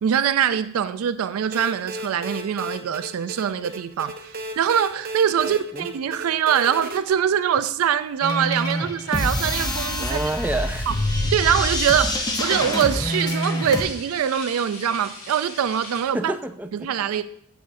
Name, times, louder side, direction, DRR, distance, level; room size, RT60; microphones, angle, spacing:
voice 1, 0.0-10.2 10.9-11.0 11.3-16.3 16.7-17.2, right 8 dB, 80° right, 0.4 m, -23 dB
sound 1, 1.5-7.0, right 1 dB, 45° right, 0.7 m, -35 dB
voice 2, 5.4-5.9 10.0-10.9 16.1-16.9, right 1 dB, 5° right, 0.3 m, -29 dB
sound 2, 8.2-13.8, left 1 dB, 20° left, 0.8 m, -26 dB
sound 3, 9.1-16.1, left 2 dB, 70° left, 3.3 m, -40 dB
10.0 x 6.8 x 2.6 m
head